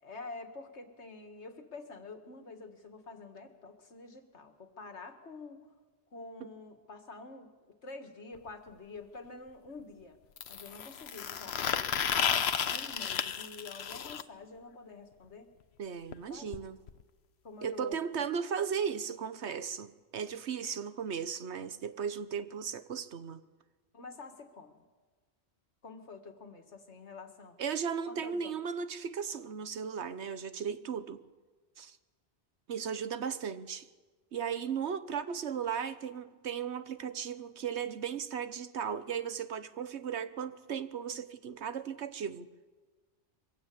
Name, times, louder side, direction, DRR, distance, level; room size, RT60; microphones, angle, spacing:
voice 1, 0.0-5.7 6.1-10.2 10.5-15.5 16.3-16.5 17.4-18.3 23.9-24.8 25.8-27.6 28.1-28.6, left 3 dB, 85° left, 2.2 m, -48 dB
sound 1, 8.4-8.5 10.4-14.2 16.1-16.2 16.5-16.6 16.9-17.0 17.9-18.0, left 8 dB, 70° left, 1.1 m, -32 dB
voice 2, 15.8-16.8 17.6-23.4 27.6-31.2 31.8-32.0 32.7-33.9 34.3-42.5, right 7 dB, 85° right, 1.3 m, -36 dB
23.0 x 16.0 x 8.6 m
omnidirectional pair, 1.1 m